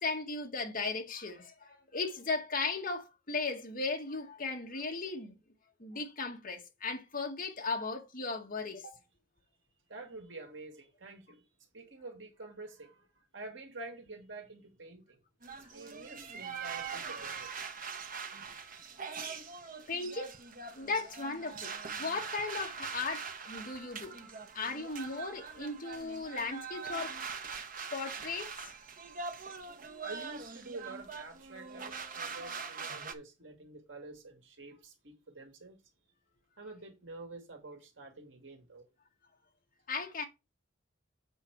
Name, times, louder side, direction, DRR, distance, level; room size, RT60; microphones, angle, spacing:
voice 1, 0.0-5.4 5.8-9.0 19.9-20.3 20.7-21.7 22.0-24.2 24.5-27.2 27.9-28.7 39.9-40.2, left 3 dB, 45° left, 1.8 m, -36 dB
voice 2, 9.9-11.5 11.7-13.1 13.3-15.2 15.5-17.5 30.0-35.8 36.6-38.8, right 2 dB, 70° right, 2.2 m, -48 dB
sound 1, 15.4-33.1, right 5 dB, 45° right, 1.0 m, -42 dB
8.1 x 5.2 x 4.7 m
head